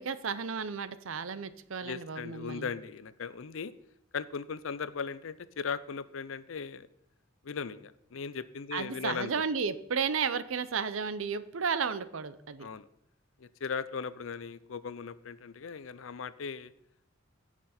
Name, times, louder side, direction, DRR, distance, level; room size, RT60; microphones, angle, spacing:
voice 1, 0.0-2.7 8.7-12.7, right 6 dB, 75° right, 14 dB, 0.7 m, -33 dB
voice 2, 1.8-3.7 4.1-6.9 7.4-9.3 12.6-12.9 13.4-16.7, left 5 dB, 70° left, 16 dB, 0.6 m, -38 dB
16.0 x 6.0 x 4.3 m, 0.76 s
head